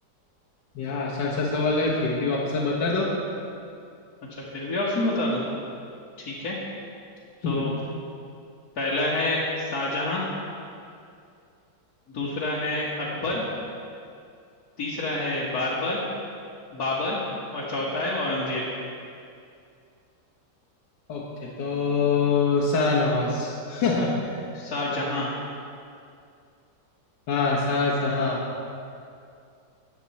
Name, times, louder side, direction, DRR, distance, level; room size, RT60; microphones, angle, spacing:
voice 1, 0.8-3.1 7.4-7.7 21.1-24.4 27.3-28.4, left 4 dB, 85° left, -6 dB, 1.9 m, -24 dB
voice 2, 4.5-5.4 6.2-6.6 7.4-7.7 8.8-10.2 12.1-13.4 14.8-16.0 16.7-17.2 17.5-18.6 24.6-25.3, left 2 dB, 60° left, -8 dB, 1.9 m, -27 dB
13.5 x 9.1 x 4.2 m, 2.4 s
omnidirectional pair, 1.9 m